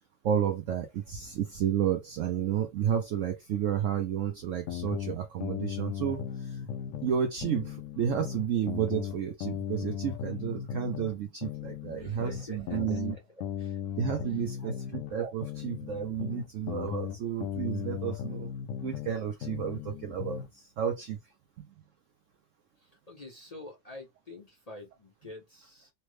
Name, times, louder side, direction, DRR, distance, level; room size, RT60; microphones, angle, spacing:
voice 1, 0.2-6.6 7.0-13.2 14.0-18.5 18.8-21.2 21.6-21.7, right 9 dB, 80° right, 0.6 m, -31 dB
sound 1, 4.7-7.1 7.4-11.1 11.4-15.1 15.4-19.1 19.4-20.5, left 9 dB, 70° left, 0.8 m, -37 dB
voice 2, 11.9-13.8 14.3-14.7 22.8-25.9, left 2 dB, 40° left, 0.5 m, -47 dB
3.2 x 2.1 x 3.1 m
omnidirectional pair, 1.8 m